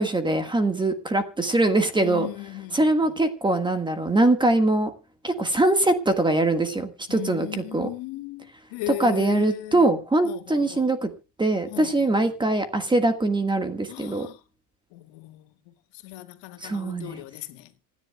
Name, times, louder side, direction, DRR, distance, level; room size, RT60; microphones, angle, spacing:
voice 1, 0.0-2.3 2.7-4.9 5.2-7.5 7.7-7.9 9.0-11.1 11.4-14.3 16.6-17.2, right 2 dB, 10° right, 1.6 m, -22 dB
voice 2, 2.0-3.2 7.1-9.9 10.2-10.9 11.7-12.3 13.9-14.4 14.9-17.7, left 18 dB, 65° left, 2.2 m, -37 dB
27.0 x 10.5 x 2.3 m
cardioid pair, 165°, 49 cm